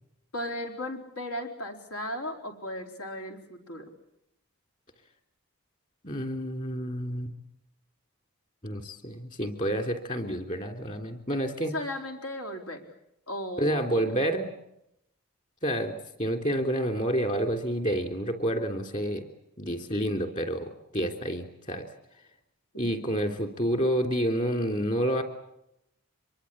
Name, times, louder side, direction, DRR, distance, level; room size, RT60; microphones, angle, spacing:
voice 1, 0.3-3.8 11.7-12.8 13.3-14.1 22.7-23.0, left 1 dB, 80° left, 4 dB, 4.3 m, -36 dB
voice 2, 6.0-7.3 8.6-11.7 13.6-14.5 15.6-19.3 19.6-21.9 22.8-25.2, equal, 35° left, 6 dB, 3.1 m, -29 dB
25.5 x 23.0 x 8.7 m, 0.81 s
head